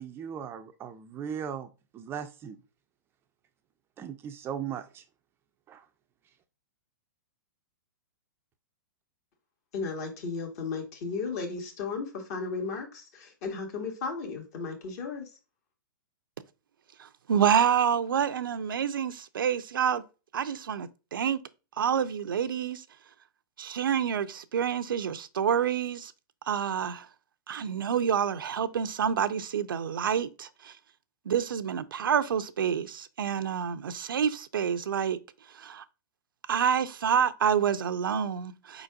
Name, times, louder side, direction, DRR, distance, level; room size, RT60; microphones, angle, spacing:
voice 1, 0.0-2.6 4.0-5.0 5.7-5.8, right 8 dB, 20° right, 0.4 m, -38 dB
voice 2, 9.7-15.3, left 4 dB, 50° left, 1.8 m, -35 dB
voice 3, 17.3-20.0 20.3-21.4 21.8-22.8 23.6-26.1 26.5-27.1 27.5-30.7 31.3-35.2 35.6-35.8 36.5-38.8, right 8 dB, 90° right, 0.5 m, -28 dB
5.0 x 4.0 x 2.3 m
hypercardioid pair, 135°, 11 cm